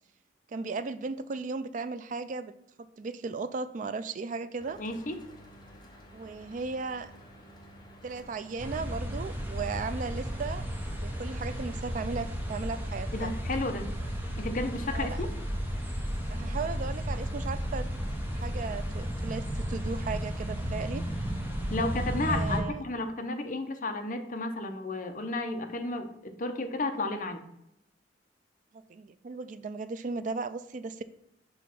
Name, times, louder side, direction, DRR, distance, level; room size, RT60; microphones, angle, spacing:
voice 1, 0.5-2.5 2.8-4.8 6.1-7.1 8.0-10.7 11.0-13.3 14.9-15.2 16.3-17.9 18.3-21.0 22.3-22.8 28.7-31.0, right 4 dB, 40° right, 13 dB, 0.3 m, -36 dB
Mechanical fan, 4.6-22.4, equal, 20° left, 1.0 m, -52 dB
voice 2, 4.8-5.2 13.1-13.9 14.4-15.3 21.7-27.4, left 2 dB, 45° left, 5 dB, 0.6 m, -33 dB
sound 1, 8.6-22.6, equal, 10° right, 0.8 m, -33 dB
6.3 x 3.0 x 5.8 m, 0.80 s
head